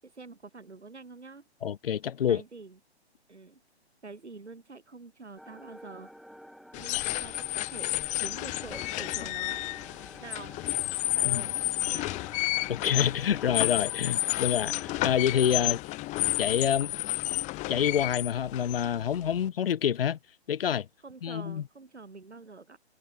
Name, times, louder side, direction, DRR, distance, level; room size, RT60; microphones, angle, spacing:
voice 1, 0.0-1.4 2.3-2.8 3.3-3.6 4.0-6.1 6.8-9.6 10.2-10.5 11.1-11.6 11.9-12.2 21.0-22.8, right 3 dB, 85° right, 7.6 m, -46 dB
voice 2, 1.6-2.4 11.2-11.4 12.7-15.8 16.4-16.9 17.7-20.2 20.5-20.9 21.2-21.6, left 9 dB, 60° left, 0.9 m, -27 dB
sound 1, 5.4-15.8, equal, ahead, 7.0 m, -50 dB
sound 2, 6.7-19.5, left 20 dB, 20° left, 2.3 m, -31 dB
figure-of-eight pair, 135°, 33 cm